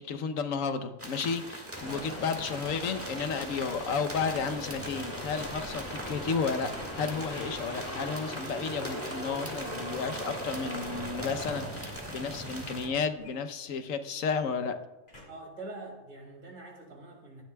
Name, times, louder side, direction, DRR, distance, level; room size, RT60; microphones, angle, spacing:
voice 1, 0.0-6.7 6.9-14.8, left 5 dB, 85° left, 9 dB, 1.2 m, -32 dB
sound 1, 1.0-12.9, right 1 dB, 10° right, 1.4 m, -42 dB
sound 2, 1.7-12.9, equal, 10° left, 2.1 m, -40 dB
sound 3, 6.7-7.1 8.5-8.8 10.2-11.5 13.2-14.1 15.1-15.6 16.3-16.4, left 1 dB, 40° left, 2.5 m, -56 dB
voice 2, 15.3-17.4, right 2 dB, 70° right, 0 dB, 2.9 m, -44 dB
16.5 x 11.5 x 2.3 m, 1.0 s
omnidirectional pair, 1.4 m